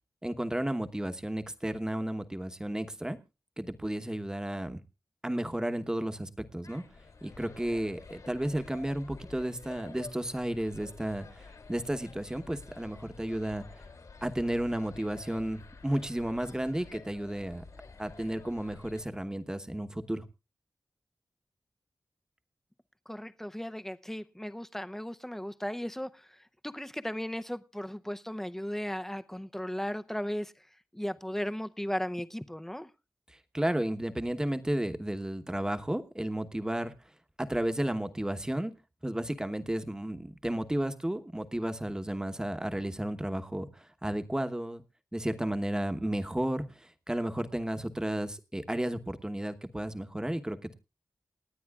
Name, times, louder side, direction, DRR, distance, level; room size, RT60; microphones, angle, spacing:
voice 1, 0.2-3.2 3.6-4.8 5.2-6.8 7.2-13.8 14.2-17.6 18.0-20.2 33.5-36.9 37.4-38.7 39.0-44.8 45.1-50.7, right 1 dB, 10° right, 1.1 m, -33 dB
sound 1, 6.6-19.0, left 4 dB, 70° left, 3.0 m, -50 dB
voice 2, 23.1-30.7 30.9-32.9, equal, 5° left, 0.6 m, -36 dB
28.0 x 9.5 x 2.4 m
wide cardioid pair, 105°, 6 cm